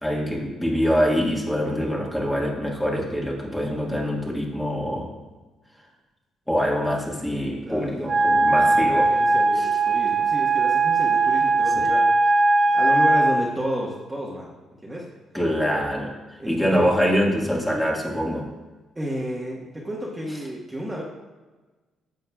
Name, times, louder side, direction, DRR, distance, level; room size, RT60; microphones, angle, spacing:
voice 1, 0.0-5.1 6.5-9.1 11.8-11.9 15.3-16.1 16.5-18.5, equal, 5° left, -2 dB, 1.8 m, -24 dB
voice 2, 7.3-8.1 8.4-12.4 12.7-14.5 14.8-15.1 16.4-16.9 18.9-21.0, right 1 dB, 15° right, -4 dB, 1.5 m, -32 dB
Wind instrument woodwind instrument, 8.0-13.4, right 3 dB, 35° right, 1.0 m, -19 dB
11.0 x 6.9 x 2.4 m, 1.2 s
cardioid pair, 90°, 0 cm